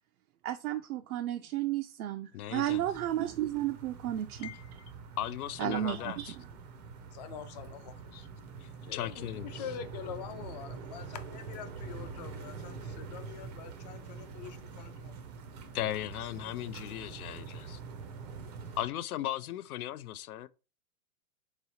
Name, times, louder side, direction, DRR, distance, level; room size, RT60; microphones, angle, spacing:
voice 1, 0.4-4.5 5.6-6.5, right 12 dB, 85° right, 0.5 m, -33 dB
voice 2, 2.3-2.8 5.2-6.3 8.9-9.5 15.7-17.8 18.8-20.5, left 13 dB, 85° left, 0.5 m, -36 dB
sound 1, 2.7-18.9, right 5 dB, 30° right, 0.4 m, -45 dB
voice 3, 4.4-4.7 6.0-6.1 7.1-8.3 8.8-15.2 15.8-16.1 17.5-17.6, left 9 dB, 30° left, 0.4 m, -45 dB
3.9 x 3.0 x 2.8 m
hypercardioid pair, 145°, 43 cm